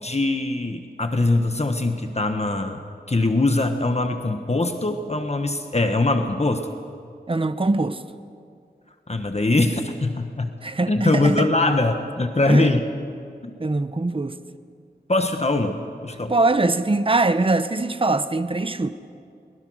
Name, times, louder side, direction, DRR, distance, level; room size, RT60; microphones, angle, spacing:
voice 1, 0.0-2.8 3.1-6.7 9.1-10.5 10.9-12.8 13.4-13.5 15.1-16.3, left 2 dB, 40° left, 1.3 m, -22 dB
voice 2, 7.3-8.0 10.6-11.5 12.5-12.7 13.6-14.4 16.3-18.9, right 2 dB, 30° right, 0.8 m, -22 dB
22.5 x 21.0 x 6.3 m
wide cardioid pair, 75°, 17 cm